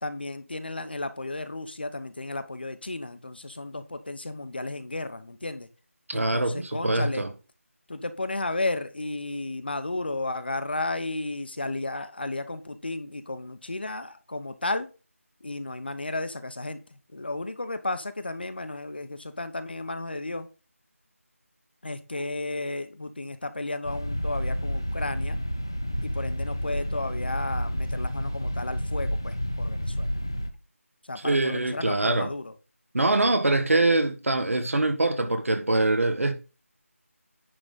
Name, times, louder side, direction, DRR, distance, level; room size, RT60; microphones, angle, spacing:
voice 1, 0.0-5.7 6.1-7.2 7.9-14.9 15.4-20.5 21.8-25.4 26.0-30.1 31.0-32.5, left 2 dB, 45° left, 0.9 m, -33 dB
voice 2, 6.1-7.3 31.2-32.3 32.9-36.3, right 2 dB, 65° right, 1.5 m, -24 dB
sound 1, 23.8-30.5, equal, 15° left, 0.4 m, -30 dB
10.0 x 3.9 x 5.5 m
figure-of-eight pair, 175°, 8 cm